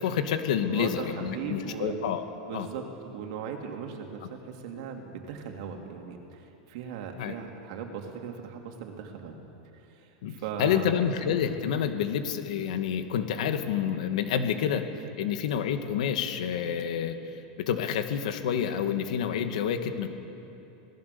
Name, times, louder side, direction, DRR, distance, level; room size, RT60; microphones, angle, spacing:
voice 1, 0.0-2.2 2.5-2.7 7.2-7.3 10.2-14.8 15.2-17.2 17.6-20.1, left 8 dB, 75° left, 7 dB, 2.1 m, -28 dB
voice 2, 0.6-2.0 2.5-9.4 9.7-10.9, right 7 dB, 55° right, 2 dB, 3.2 m, -38 dB
27.0 x 18.5 x 7.0 m, 2.9 s
supercardioid pair, 165°, 4 cm